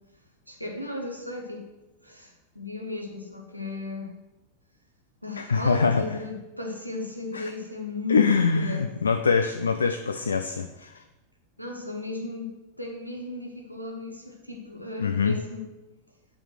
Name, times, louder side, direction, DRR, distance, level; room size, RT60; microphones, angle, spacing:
voice 1, 0.5-1.7 2.0-4.1 5.2-8.9 11.6-15.7, left 3 dB, 90° left, 2 dB, 1.2 m, -35 dB
voice 2, 5.4-6.0 7.3-7.5 8.1-11.0 15.0-15.4, left 5 dB, 75° left, 9 dB, 0.4 m, -24 dB
8.9 x 4.2 x 6.3 m, 1.1 s
figure-of-eight pair, 90°, 0 cm